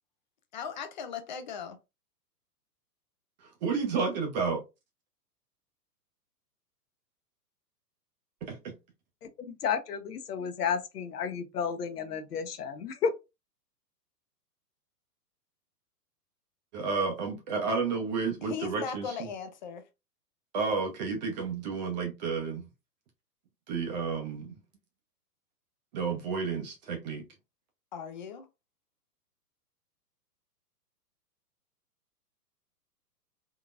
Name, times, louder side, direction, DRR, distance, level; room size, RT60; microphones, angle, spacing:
voice 1, 0.5-1.8 18.4-19.9 27.9-28.5, left 7 dB, 30° left, 0.4 m, -38 dB
voice 2, 3.4-4.6 8.4-8.7 16.7-19.3 20.5-22.6 23.7-24.5 25.9-27.2, right 5 dB, 30° right, 0.6 m, -31 dB
voice 3, 9.2-13.2, left 6 dB, 70° left, 0.9 m, -32 dB
3.7 x 2.8 x 2.3 m
figure-of-eight pair, 115°, 49 cm